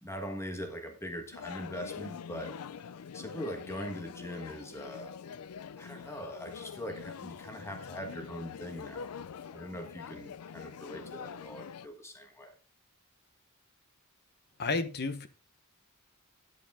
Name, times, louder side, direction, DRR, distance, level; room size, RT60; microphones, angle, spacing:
voice 1, 0.0-2.6 3.1-5.2 5.8-9.1 9.5-12.6, equal, 10° left, 1.4 m, -41 dB
sound 1, 1.3-11.9, left 6 dB, 85° left, 0.4 m, -44 dB
voice 2, 14.6-15.3, left 3 dB, 50° left, 1.0 m, -31 dB
11.5 x 8.1 x 3.6 m
head